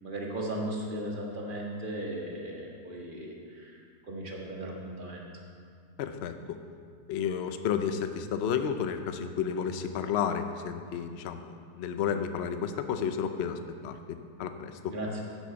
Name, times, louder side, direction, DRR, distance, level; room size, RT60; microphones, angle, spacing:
voice 1, 0.0-3.8 4.0-5.3 14.9-15.2, right 1 dB, 30° right, -2 dB, 1.7 m, -36 dB
voice 2, 6.0-6.6 7.1-15.0, left 7 dB, 90° left, 8 dB, 0.5 m, -32 dB
10.5 x 7.3 x 7.0 m, 2.3 s
omnidirectional pair, 1.9 m